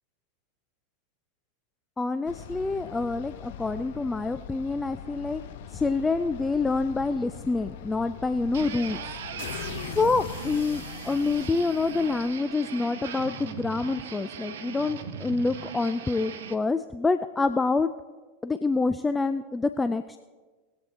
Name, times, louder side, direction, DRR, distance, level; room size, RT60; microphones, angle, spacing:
voice 1, 2.0-5.4 5.7-9.0 10.0-17.9 18.4-20.2, left 3 dB, 15° left, 10 dB, 0.4 m, -27 dB
sound 1, 2.2-12.5, left 9 dB, 60° left, 0.7 m, -41 dB
sound 2, 8.5-16.6, right 7 dB, 65° right, 0.9 m, -39 dB
20.5 x 8.7 x 2.8 m, 1.4 s
figure-of-eight pair, 85°, 0 cm